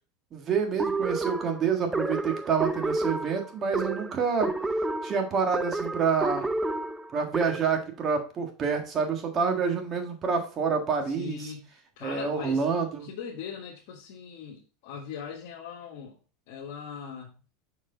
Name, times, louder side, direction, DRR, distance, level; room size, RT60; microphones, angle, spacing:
voice 1, 0.3-4.5 5.0-6.5 7.1-11.4 12.0-13.1, right 5 dB, 35° right, 4 dB, 1.6 m, -27 dB
sound 1, 0.8-7.8, right 2 dB, 10° right, 0.5 m, -30 dB
voice 2, 11.0-12.6 13.0-16.2 16.5-17.5, left 7 dB, 70° left, -3 dB, 1.4 m, -40 dB
5.9 x 4.7 x 3.8 m, 0.36 s
supercardioid pair, 120°, 0 cm